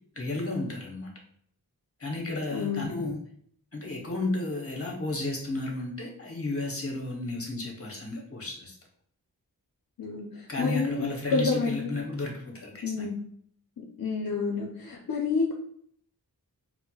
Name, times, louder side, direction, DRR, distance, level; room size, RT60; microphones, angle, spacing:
voice 1, 0.1-1.1 2.0-3.2 3.7-8.8 10.5-12.7 13.0-13.1, left 2 dB, 35° left, 0 dB, 0.9 m, -33 dB
voice 2, 2.5-3.0 10.0-12.0 12.8-13.2 14.0-15.5, left 4 dB, 65° left, -1 dB, 0.6 m, -29 dB
4.3 x 2.1 x 2.3 m, 0.64 s
wide cardioid pair, 75°, 38 cm